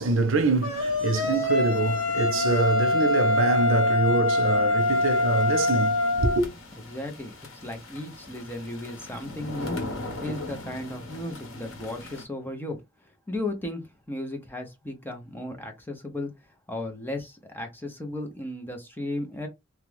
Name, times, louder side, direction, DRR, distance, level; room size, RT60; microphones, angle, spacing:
voice 1, 0.0-6.5, right 3 dB, 80° right, 0.7 m, -25 dB
sound 1, 0.6-6.4, left 2 dB, 70° left, 1.1 m, -24 dB
sound 2, 4.8-12.2, left 2 dB, 90° left, 0.9 m, -40 dB
voice 2, 6.9-19.5, left 1 dB, 10° left, 0.6 m, -35 dB
2.9 x 2.3 x 3.3 m
head